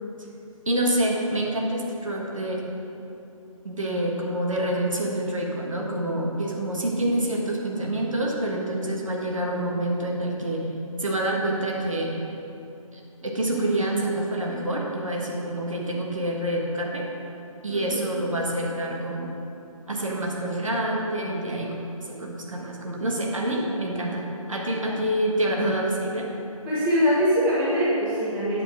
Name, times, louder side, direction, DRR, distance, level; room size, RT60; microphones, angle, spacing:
voice 1, 0.6-2.7 3.6-10.7 11.0-12.1 12.9-17.1 17.6-19.3 19.9-21.8 22.0-26.3, right 1 dB, 65° right, -1 dB, 1.6 m, -27 dB
voice 2, 17.7-18.0 26.6-28.6, equal, 10° right, -11 dB, 1.5 m, -23 dB
9.8 x 6.4 x 5.1 m, 2.9 s
figure-of-eight pair, 150°, 18 cm